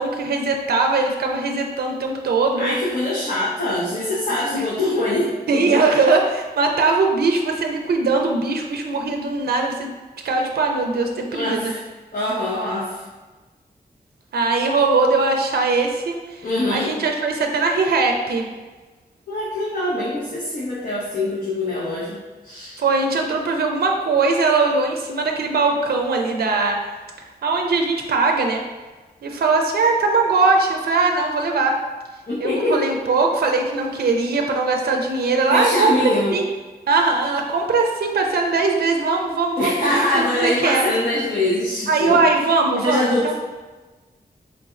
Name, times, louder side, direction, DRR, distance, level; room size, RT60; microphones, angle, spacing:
voice 1, 0.0-2.7 4.5-4.7 5.5-9.9 10.2-11.7 14.3-18.5 22.8-26.9 27.4-28.6 29.2-31.8 32.4-35.9 36.3-36.4 36.9-40.8 41.9-43.3, right 3 dB, 70° right, 2 dB, 0.4 m, -20 dB
voice 2, 2.6-5.8 11.3-11.8 12.1-13.0 16.4-16.9 19.3-22.2 22.4-22.8 32.3-32.9 35.5-36.3 39.6-42.2 42.7-43.3, left 1 dB, 55° left, -8 dB, 0.8 m, -23 dB
3.9 x 3.4 x 2.4 m, 1.2 s
wide cardioid pair, 125°, 17 cm